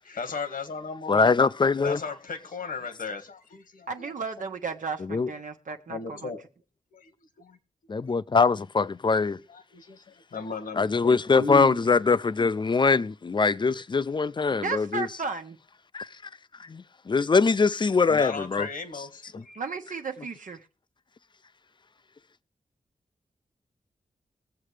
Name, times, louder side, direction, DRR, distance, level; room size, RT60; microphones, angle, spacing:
voice 1, 0.0-1.3 1.8-3.9 5.9-6.4 6.9-7.1 7.4-7.6 9.4-11.8 18.1-19.6, left 4 dB, 80° left, 1.6 m, -35 dB
voice 2, 1.1-2.0 5.1-5.3 7.9-9.4 10.8-15.1 15.9-16.1 16.6-18.7 19.3-19.4, left 4 dB, 35° left, 0.5 m, -23 dB
voice 3, 3.9-6.3 14.6-15.6 19.5-20.7, right 4 dB, 70° right, 1.2 m, -34 dB
21.5 x 7.7 x 3.3 m
wide cardioid pair, 95°, 14 cm